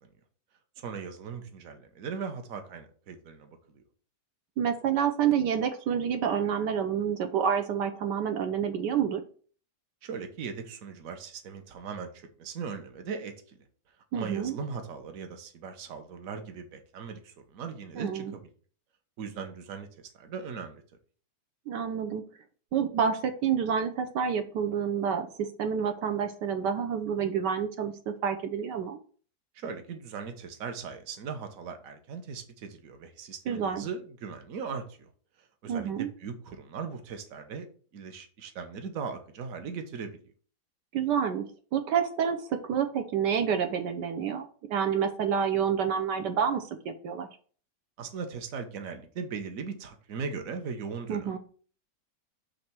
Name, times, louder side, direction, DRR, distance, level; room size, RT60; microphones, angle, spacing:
voice 1, 0.8-3.8 10.0-13.6 14.1-18.5 19.2-20.8 29.5-35.1 35.6-37.7 37.9-40.3 48.0-51.4, right 5 dB, 55° right, 6 dB, 1.3 m, -39 dB
voice 2, 4.6-9.2 14.1-14.5 18.0-18.3 21.7-22.2 22.7-29.0 33.5-33.9 35.7-36.1 40.9-41.4 41.7-47.3 51.1-51.4, right 7 dB, 80° right, 6 dB, 1.3 m, -28 dB
6.7 x 3.4 x 5.9 m, 0.43 s
omnidirectional pair, 1.8 m